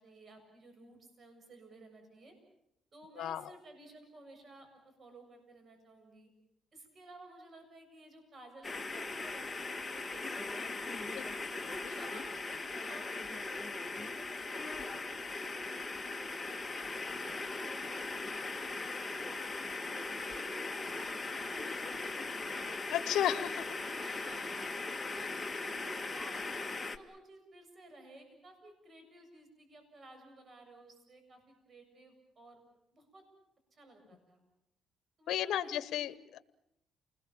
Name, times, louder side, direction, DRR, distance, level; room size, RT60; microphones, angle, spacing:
voice 1, 0.0-2.4 2.9-6.3 6.7-11.2 11.7-22.3 23.3-23.5 24.0-24.6 25.1-26.6 26.9-32.6 32.9-33.2 33.7-34.4 35.2-36.2, right 2 dB, 40° right, 6 dB, 7.5 m, -56 dB
voice 2, 3.2-3.5 11.1-11.4 11.8-11.9 21.6-21.7 22.9-23.6 35.3-36.4, left 11 dB, 75° left, 15 dB, 1.0 m, -34 dB
sound 1, 8.6-27.0, left 3 dB, 20° left, 1.8 m, -39 dB
29.0 x 20.5 x 7.3 m, 0.76 s
cardioid pair, 90°, 0 cm